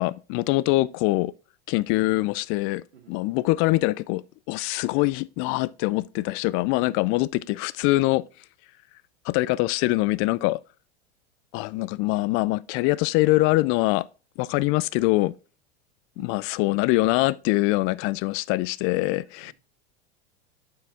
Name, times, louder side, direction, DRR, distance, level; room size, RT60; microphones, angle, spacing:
voice 1, 0.0-1.3 1.7-4.2 4.5-8.2 9.3-10.6 11.5-14.0 14.4-15.3 16.2-19.5, left 20 dB, 40° left, 0.4 m, -23 dB
voice 2, 2.9-3.4 16.2-16.4 18.9-19.0 19.4-19.5, right 7 dB, 90° right, 1.4 m, -52 dB
8.6 x 4.7 x 3.5 m
hypercardioid pair, 100°, 33 cm